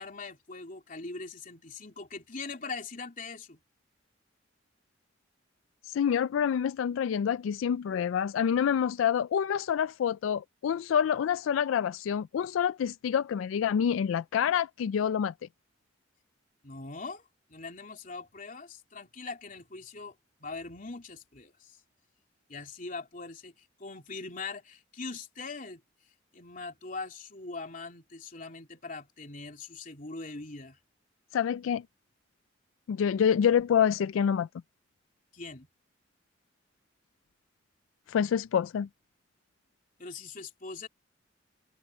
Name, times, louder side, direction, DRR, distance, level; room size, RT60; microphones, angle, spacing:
voice 1, 0.0-3.6 16.6-17.2 17.5-20.1 20.4-21.8 22.5-25.8 26.3-30.8 35.3-35.7 40.0-40.9, left 4 dB, 45° left, 3.4 m, -41 dB
voice 2, 5.9-15.3 31.3-31.8 32.9-34.5 38.1-38.9, left 8 dB, 90° left, 0.3 m, -27 dB
head